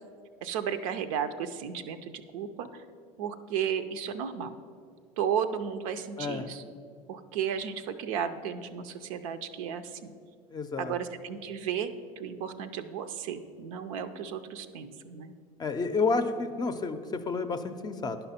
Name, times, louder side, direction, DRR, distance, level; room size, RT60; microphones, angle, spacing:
voice 1, 0.4-2.9 3.2-4.6 5.2-6.6 7.1-10.1 10.8-15.3, right 8 dB, 70° right, 9 dB, 0.5 m, -34 dB
voice 2, 10.5-10.9 15.6-18.3, left 4 dB, 25° left, 8 dB, 0.5 m, -30 dB
10.5 x 5.5 x 4.2 m, 2.3 s
hypercardioid pair, 80°, 18 cm